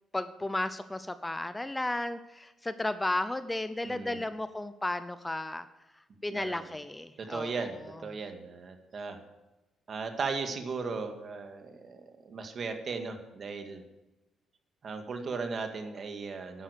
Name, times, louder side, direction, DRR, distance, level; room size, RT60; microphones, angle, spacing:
voice 1, 0.1-5.7 6.2-7.8, left 1 dB, 15° left, 12 dB, 0.7 m, -34 dB
voice 2, 3.8-4.2 6.3-6.7 7.2-9.2 9.9-13.8 14.8-16.6, right 4 dB, 50° right, 5 dB, 2.1 m, -37 dB
11.0 x 10.0 x 6.9 m, 1.0 s
cardioid pair, 90°, 0 cm